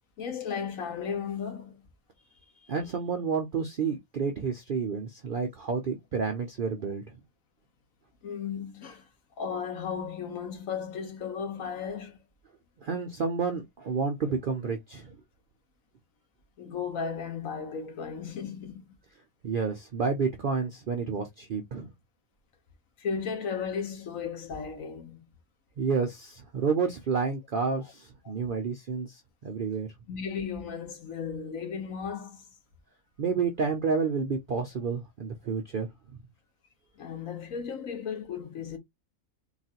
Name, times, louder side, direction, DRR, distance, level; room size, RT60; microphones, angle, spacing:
voice 1, 0.2-1.8 8.2-9.0 9.4-12.2 16.6-18.9 23.0-25.2 27.8-27.9 28.2-28.3 30.1-32.4 37.0-38.8, left 6 dB, 65° left, 1.4 m, -35 dB
voice 2, 2.7-7.0 12.8-15.1 19.4-21.9 25.8-29.9 33.2-35.9, right 5 dB, 60° right, 0.5 m, -30 dB
3.8 x 2.4 x 2.8 m
omnidirectional pair, 1.5 m